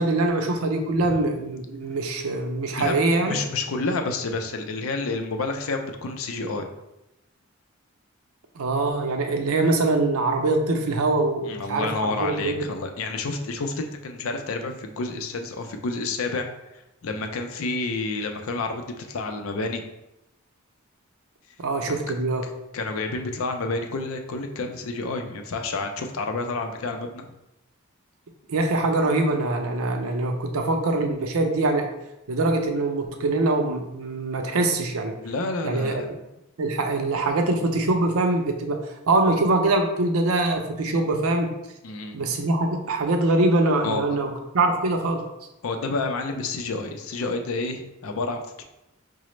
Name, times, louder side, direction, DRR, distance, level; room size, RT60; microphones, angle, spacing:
voice 1, 0.0-3.4 8.6-12.7 21.6-22.5 28.5-31.9 32.3-35.2 35.6-36.0 36.6-41.5 42.1-45.2, right 2 dB, 85° right, 4 dB, 0.5 m, -23 dB
voice 2, 3.3-6.7 11.4-16.5 16.7-19.9 21.8-22.1 22.7-27.2 35.2-36.1 41.8-42.3 43.8-44.2 45.6-48.6, left 3 dB, 75° left, 5 dB, 0.5 m, -29 dB
4.8 x 2.0 x 3.1 m, 0.91 s
head